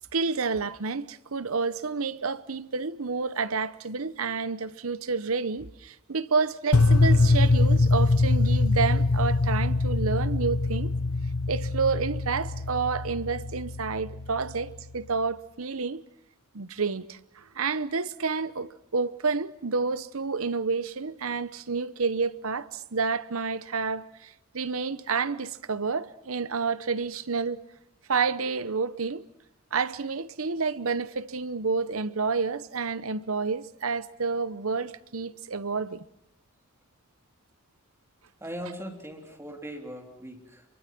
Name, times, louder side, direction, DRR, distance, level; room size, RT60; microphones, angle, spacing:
voice 1, 0.1-10.9 11.5-16.0 16.5-27.6 28.1-29.2 29.7-36.1, right 4 dB, 70° right, 0.9 m, -29 dB
sound 1, 6.7-14.9, left 3 dB, 80° left, 0.9 m, -24 dB
voice 2, 38.4-40.7, equal, 10° right, 3.5 m, -40 dB
26.0 x 24.0 x 6.1 m
head